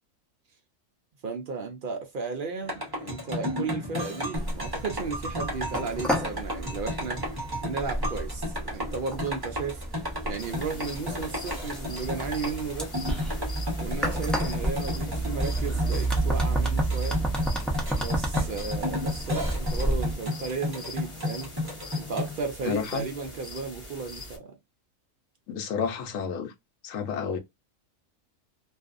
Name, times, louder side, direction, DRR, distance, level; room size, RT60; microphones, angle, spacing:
voice 1, 1.2-7.3 7.6-9.8 10.2-12.9 13.8-17.2 17.9-21.5 22.0-24.6, right 4 dB, 65° right, 0.5 m, -34 dB
sound 1, 2.6-22.4, left 1 dB, 20° right, 0.9 m, -33 dB
sound 2, 4.3-20.2, right 2 dB, ahead, 0.3 m, -31 dB
sound 3, 10.4-24.4, left 2 dB, 25° left, 1.0 m, -43 dB
voice 2, 22.6-23.1 25.5-26.5 26.8-27.4, left 6 dB, 75° left, 1.0 m, -30 dB
2.5 x 2.4 x 2.4 m
omnidirectional pair, 1.5 m